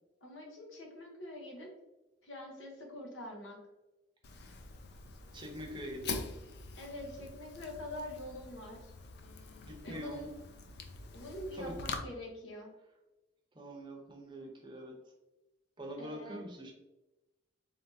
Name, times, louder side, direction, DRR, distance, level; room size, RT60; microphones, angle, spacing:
voice 1, 0.2-1.7 2.2-3.6 6.7-8.9 9.8-10.3 11.1-12.7 16.0-16.4, left 1 dB, 85° left, 1 dB, 1.0 m, -45 dB
Fire, 4.2-12.0, left 4 dB, 55° left, 0.4 m, -45 dB
voice 2, 5.3-6.3 9.7-10.3 11.5-11.8 13.5-15.0 15.8-16.7, equal, 25° right, 1 dB, 0.6 m, -43 dB
3.7 x 3.5 x 2.6 m, 1.0 s
head